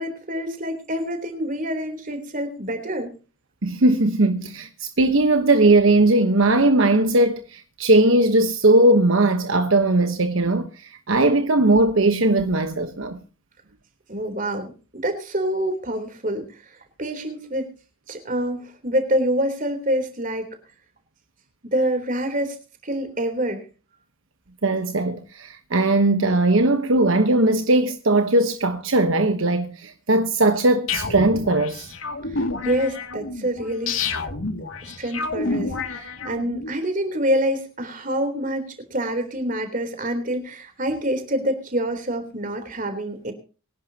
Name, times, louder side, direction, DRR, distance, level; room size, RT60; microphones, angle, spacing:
voice 1, 0.0-3.1 14.1-16.4 17.0-17.7 18.1-20.5 21.6-22.6 22.8-23.6 32.3-34.0 34.8-43.3, right 1 dB, 40° right, 3.6 m, -26 dB
voice 2, 3.6-13.2 24.6-31.9, right 2 dB, 70° right, 1.2 m, -19 dB
sound 1, 30.9-36.7, left 3 dB, 75° left, 2.4 m, -29 dB
24.5 x 11.0 x 2.9 m
head